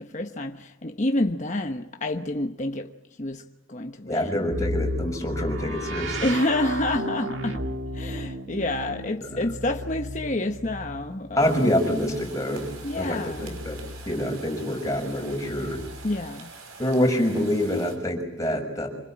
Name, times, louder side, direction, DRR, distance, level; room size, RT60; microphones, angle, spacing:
voice 1, 0.0-2.9 3.2-4.5 6.2-7.7 7.9-11.7 12.8-13.6 16.0-16.5, left 1 dB, 35° left, 1.1 m, -28 dB
voice 2, 4.1-6.2 9.2-9.3 11.4-12.7 12.9-13.8 14.1-15.8 16.8-18.9, left 1 dB, 15° left, 6.1 m, -26 dB
sound 1, 4.5-14.3 15.3-16.4, equal, 60° right, 2.3 m, -34 dB
sound 2, 11.4-18.0, right 4 dB, 90° right, 5.8 m, -45 dB
27.0 x 24.5 x 8.7 m
head